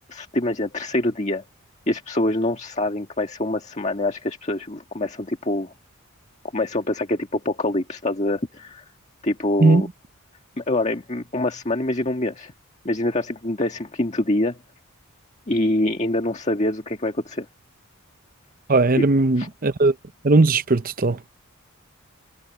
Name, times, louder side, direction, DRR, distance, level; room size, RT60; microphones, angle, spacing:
voice 1, 0.1-1.4 1.9-5.7 6.5-8.8 9.2-9.9 10.6-12.5 12.9-14.6 15.5-17.5 19.0-19.1 19.4-19.5, left 1 dB, 30° left, 1.7 m, -25 dB
voice 2, 18.7-19.9 20.2-21.2, right 3 dB, 40° right, 0.7 m, -18 dB
head